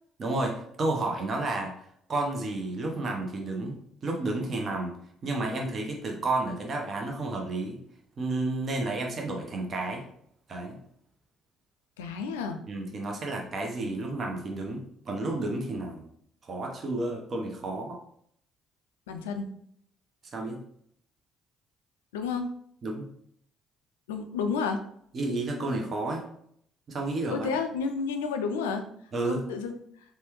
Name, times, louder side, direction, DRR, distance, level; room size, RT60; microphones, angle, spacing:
voice 1, 0.2-1.7 2.1-4.9 5.2-7.8 8.2-10.0 10.5-10.8 12.7-16.0 16.4-18.0 20.3-20.6 22.8-23.1 25.1-26.3 26.9-27.5 29.1-29.4, right 2 dB, 50° right, 1 dB, 0.7 m, -31 dB
voice 2, 12.0-12.6 19.1-19.5 22.1-22.5 24.1-24.8 27.3-28.8 29.3-29.7, left 5 dB, 85° left, 6 dB, 0.3 m, -30 dB
3.2 x 2.2 x 3.0 m, 0.67 s
hypercardioid pair, 50°, 0 cm